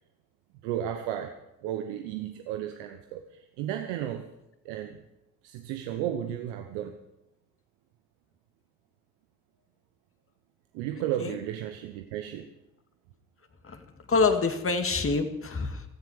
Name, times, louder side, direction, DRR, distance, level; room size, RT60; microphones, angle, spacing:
voice 1, 0.6-4.2 4.6-5.0 5.4-7.0 10.7-12.5, right 11 dB, 75° right, 7 dB, 1.2 m, -34 dB
voice 2, 14.1-15.8, left 4 dB, 35° left, 7 dB, 2.1 m, -26 dB
17.0 x 14.0 x 5.0 m, 0.92 s
hypercardioid pair, 55°, 40 cm